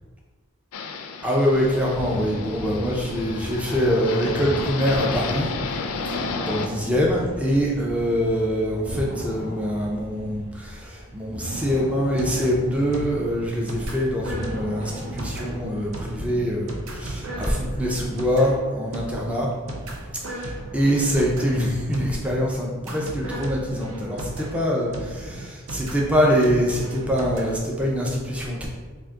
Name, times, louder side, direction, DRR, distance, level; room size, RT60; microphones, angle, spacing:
sound 1, 0.7-6.7, left 4 dB, 75° left, 0.4 m, -32 dB
voice 1, 1.2-5.5 6.5-19.5 20.2-28.7, equal, 5° right, -3 dB, 0.4 m, -24 dB
sound 2, 1.3-16.7, equal, 35° right, 1.0 m, -37 dB
sound 3, 11.6-27.6, right 1 dB, 65° right, 0.6 m, -36 dB
3.7 x 2.5 x 3.6 m, 1.4 s
head